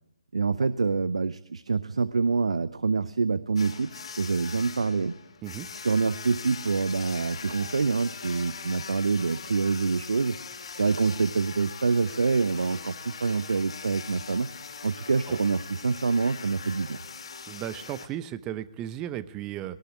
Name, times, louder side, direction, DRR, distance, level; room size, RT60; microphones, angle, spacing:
voice 1, 0.3-5.2 5.8-10.4 10.7-14.5 14.8-17.0, right 4 dB, 70° right, 17 dB, 0.7 m, -26 dB
sound 1, 3.6-18.1, left 5 dB, 55° left, 3.3 m, -41 dB
voice 2, 17.5-19.8, right 12 dB, 20° right, 15 dB, 0.8 m, -35 dB
18.5 x 18.0 x 8.8 m, 0.86 s
figure-of-eight pair, 135°, 3 cm